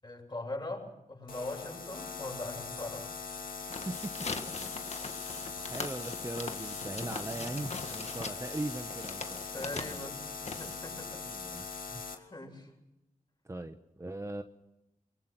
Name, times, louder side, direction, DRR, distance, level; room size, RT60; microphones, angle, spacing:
voice 1, 0.0-3.1 4.6-4.7 6.8-7.1 7.9-8.4 9.5-11.2 11.6-11.9 12.1-12.7, left 2 dB, 30° left, 1 dB, 7.6 m, -42 dB
sound 1, 1.3-12.1, left 5 dB, 80° left, 2.8 m, -41 dB
sound 2, 3.6-11.1, left 4 dB, 50° left, 1.8 m, -42 dB
voice 2, 3.7-4.3 5.7-10.0 11.2-12.0 13.4-14.4, right 2 dB, 20° right, 7 dB, 1.1 m, -40 dB
23.0 x 23.0 x 6.1 m, 0.92 s
wide cardioid pair, 85°, 14 cm